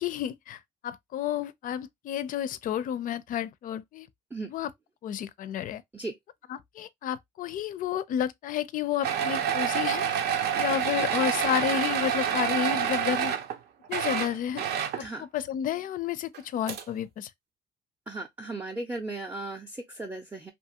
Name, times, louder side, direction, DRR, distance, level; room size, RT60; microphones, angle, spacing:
voice 1, 0.0-4.1 4.5-4.7 5.0-5.8 6.5-10.1 10.5-13.3 13.9-14.6 15.0-15.1 15.3-17.3, left 10 dB, 55° left, 0.4 m, -31 dB
sound 1, 9.0-13.6 13.8-15.1 16.3-16.4 16.7-16.8, right 8 dB, 70° right, 0.6 m, -28 dB
voice 2, 18.1-20.5, right 2 dB, 10° right, 0.5 m, -36 dB
2.6 x 2.4 x 2.7 m
cardioid pair, 110°, 17 cm